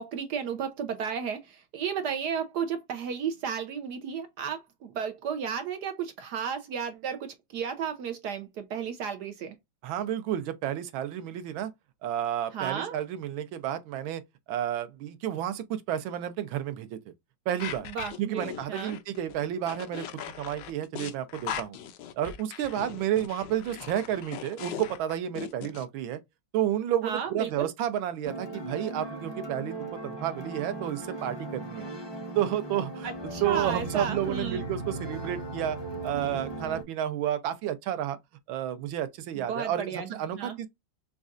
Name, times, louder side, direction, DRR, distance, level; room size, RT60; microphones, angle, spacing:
voice 1, 0.0-9.6 12.5-13.0 17.8-19.0 27.0-27.7 33.0-34.6 39.4-40.1 40.3-40.6, right 7 dB, 65° right, 1.1 m, -33 dB
voice 2, 9.8-11.7 12.0-14.2 14.5-17.0 17.5-17.9 18.2-21.8 22.1-26.2 26.5-31.9 32.3-33.1 33.4-38.2 38.5-40.7, right 11 dB, 85° right, 1.5 m, -31 dB
sound 1, 17.6-25.8, left 9 dB, 70° left, 1.2 m, -39 dB
sound 2, 28.2-36.8, right 2 dB, 20° left, 0.7 m, -37 dB
5.2 x 2.4 x 2.4 m
omnidirectional pair, 2.1 m